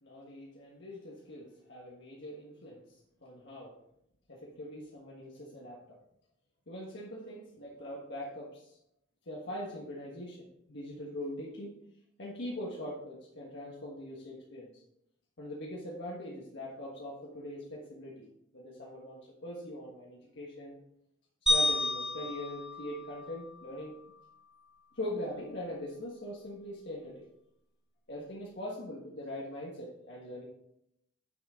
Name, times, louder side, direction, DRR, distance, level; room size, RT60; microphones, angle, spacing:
voice 1, 0.0-2.8 3.2-3.7 4.3-6.0 6.7-8.8 9.3-11.7 12.2-14.7 15.4-18.3 18.5-20.8 21.5-24.0 25.0-27.3 28.1-30.4, left 1 dB, 60° left, -4 dB, 1.5 m, -42 dB
sound 1, 21.5-23.8, left 1 dB, 5° right, 2.0 m, -31 dB
9.5 x 6.3 x 3.7 m, 0.78 s
head